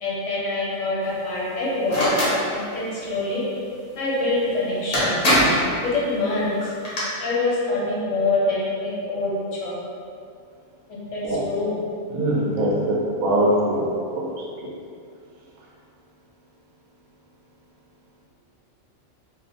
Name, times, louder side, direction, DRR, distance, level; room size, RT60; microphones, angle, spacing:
voice 1, 0.0-2.1 2.5-3.4 4.0-5.1 5.8-6.7 7.2-9.7 10.9-11.7, left 2 dB, 65° left, -7 dB, 1.0 m, -25 dB
sound 1, 1.9-2.4 4.4-4.5 4.9-5.7 6.6-7.0, equal, 45° left, 0.5 m, -20 dB
voice 2, 12.1-13.8 14.1-14.2 14.6-14.7, right 1 dB, 90° right, -4 dB, 1.0 m, -22 dB
2.7 x 2.1 x 2.6 m, 2.4 s
omnidirectional pair, 1.4 m